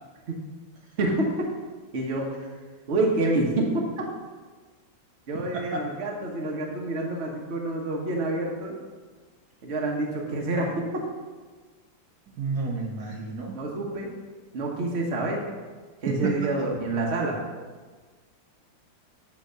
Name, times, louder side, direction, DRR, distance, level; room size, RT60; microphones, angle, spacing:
voice 1, 1.0-1.5 1.9-2.3 2.9-3.7 4.0-4.1 5.3-8.7 9.6-10.7 13.5-14.1 14.5-15.4 16.0-17.4, right 2 dB, 40° right, -1 dB, 1.1 m, -27 dB
voice 2, 5.3-5.8 12.4-13.5 16.1-16.4, right 4 dB, 65° right, 0 dB, 1.2 m, -30 dB
8.8 x 3.5 x 6.4 m, 1.4 s
omnidirectional pair, 2.0 m